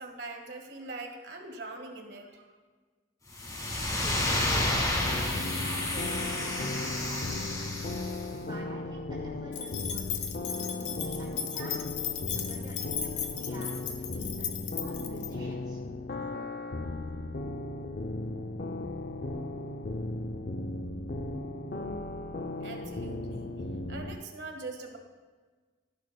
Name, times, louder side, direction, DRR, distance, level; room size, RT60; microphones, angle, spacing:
voice 1, 0.0-2.6 22.6-23.5 23.9-25.0, right 3 dB, 70° right, 4 dB, 1.7 m, -42 dB
sound 1, 3.3-8.3, left 1 dB, 20° left, 1.5 m, -30 dB
voice 2, 3.9-7.8 8.4-10.2 10.6-11.8 12.3-15.8, right 1 dB, 25° right, -13 dB, 3.7 m, -47 dB
sound 2, 5.0-24.2, left 2 dB, 50° left, 0.5 m, -36 dB
sound 3, 9.5-15.3, left 8 dB, 90° left, 1.0 m, -36 dB
16.0 x 11.5 x 2.2 m, 1.4 s
head